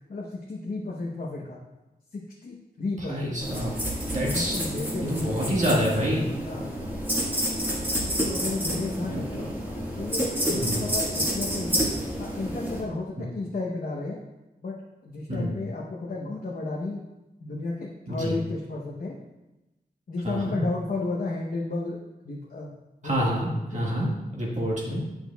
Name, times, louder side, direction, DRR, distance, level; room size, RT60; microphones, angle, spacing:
voice 1, 0.1-1.6 2.1-3.4 4.2-5.3 6.4-6.7 8.2-9.5 10.0-11.9 12.2-14.2 14.6-14.8 15.0-17.0 17.4-19.2 20.1-22.0 22.2-22.7 23.0-23.9, left 3 dB, 60° left, -4 dB, 0.8 m, -33 dB
voice 2, 3.0-3.7 4.1-4.6 5.1-6.2 9.0-9.3 10.5-10.8 13.2-13.3 15.3-15.5 18.1-18.4 20.2-20.6 23.0-25.0, equal, 45° right, -4 dB, 1.6 m, -27 dB
sound 1, 3.4-12.8, equal, 10° right, 1.6 m, -29 dB
8.7 x 6.2 x 2.3 m, 1.0 s
wide cardioid pair, 110°, 16 cm